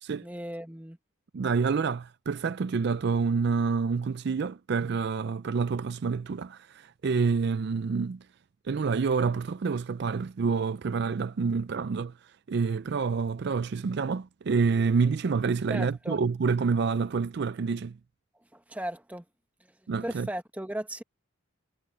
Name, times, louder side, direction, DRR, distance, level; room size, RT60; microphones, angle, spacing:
voice 1, 0.2-1.0 15.7-16.2 18.5-19.2 19.6-21.0, right 1 dB, 5° right, 1.2 m, -37 dB
voice 2, 1.3-8.2 8.6-12.1 12.5-18.0 19.9-20.3, right 5 dB, 50° right, 0.4 m, -28 dB
head